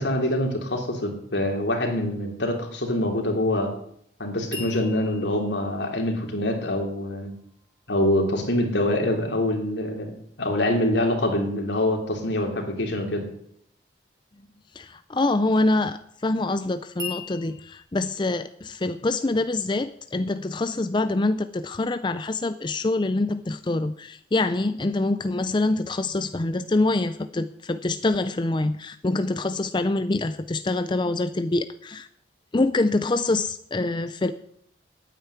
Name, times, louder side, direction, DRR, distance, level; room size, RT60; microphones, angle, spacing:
voice 1, 0.0-3.7 4.2-7.3 7.9-10.1 10.4-13.2, left 1 dB, 75° left, 3 dB, 3.1 m, -25 dB
sound 1, 4.5-7.6 17.0-17.8, left 4 dB, 20° right, 2.7 m, -40 dB
voice 2, 14.7-32.1 32.5-34.3, left 2 dB, 25° left, 11 dB, 0.5 m, -25 dB
9.3 x 9.1 x 9.7 m, 0.70 s
head